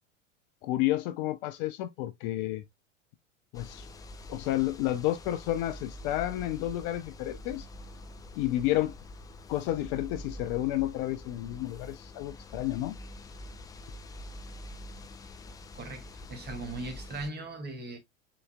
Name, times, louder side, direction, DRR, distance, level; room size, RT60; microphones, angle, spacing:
voice 1, 0.6-2.6 3.5-3.9 4.3-7.7 8.4-8.9 9.5-12.9, left 15 dB, 45° left, 0.7 m, -31 dB
sound 1, 3.5-17.3, left 1 dB, 10° left, 0.4 m, -46 dB
voice 2, 15.7-18.0, right 2 dB, 25° right, 2.1 m, -39 dB
5.5 x 4.1 x 2.2 m
hypercardioid pair, 90°, 39 cm